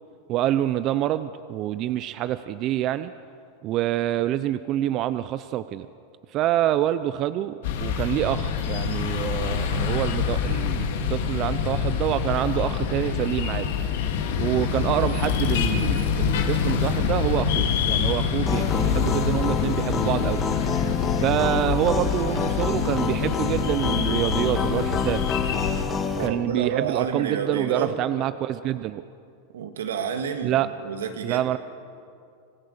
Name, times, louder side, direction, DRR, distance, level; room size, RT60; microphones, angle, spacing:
voice 1, 0.3-3.1 3.6-5.9 6.3-13.7 14.4-20.4 21.2-25.3 26.2-29.0 30.4-30.7 31.2-31.6, right 13 dB, 40° right, 13 dB, 0.6 m, -26 dB
sound 1, 7.6-25.8, left 7 dB, 70° left, 2.1 m, -26 dB
sound 2, 18.5-26.3, left 6 dB, 25° left, 1.7 m, -28 dB
voice 2, 26.1-28.0 29.5-31.6, right 6 dB, 90° right, 6 dB, 2.0 m, -29 dB
25.5 x 15.5 x 6.7 m, 2.4 s
hypercardioid pair, 120°, 0 cm